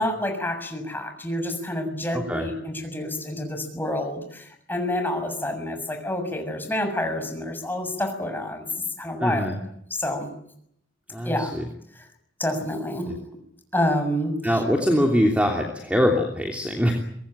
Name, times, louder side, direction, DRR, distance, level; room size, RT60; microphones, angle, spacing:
voice 1, 0.0-8.7 9.0-9.6 9.9-10.3 11.2-11.5 12.4-13.1 13.7-14.5, left 1 dB, 10° left, 5 dB, 6.8 m, -28 dB
voice 2, 2.1-2.5 9.2-9.5 11.1-11.6 13.1-13.2 14.4-16.9, equal, 5° right, 1 dB, 3.0 m, -23 dB
24.5 x 21.5 x 8.9 m, 0.71 s
head